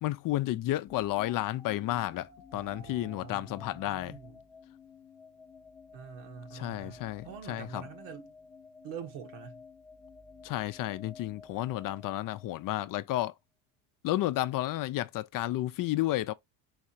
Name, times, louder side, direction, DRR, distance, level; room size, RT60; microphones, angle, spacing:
voice 1, 0.0-4.2 6.5-7.8 10.4-13.3 14.0-16.3, left 15 dB, 45° left, 0.5 m, -32 dB
sound 1, 0.9-13.0, left 5 dB, ahead, 0.9 m, -53 dB
voice 2, 2.5-4.4 5.9-8.3 8.8-9.7, right 7 dB, 75° right, 1.5 m, -46 dB
4.9 x 3.2 x 2.8 m
supercardioid pair, 95°, 47 cm